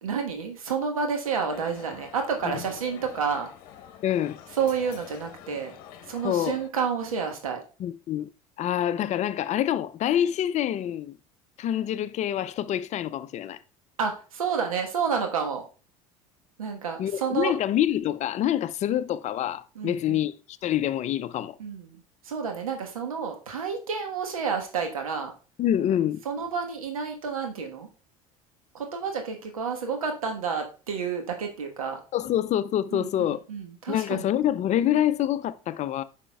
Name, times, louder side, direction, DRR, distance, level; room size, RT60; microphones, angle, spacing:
voice 1, 0.0-3.5 4.6-5.7 6.1-7.6 14.0-15.6 16.6-17.6 19.7-20.2 21.6-22.0 22.2-25.3 26.2-27.9 28.7-32.0 32.9-34.3, right 6 dB, 85° right, 1.3 m, -30 dB
sound 1, 1.5-6.7, left 9 dB, 60° left, 0.9 m, -45 dB
voice 2, 4.0-4.4 6.2-6.6 7.8-8.3 8.6-11.2 11.6-13.6 17.0-20.3 20.6-21.6 25.6-26.2 32.1-33.4 33.9-36.0, left 11 dB, 40° left, 0.5 m, -26 dB
9.8 x 5.7 x 2.3 m
hypercardioid pair, 70°, 18 cm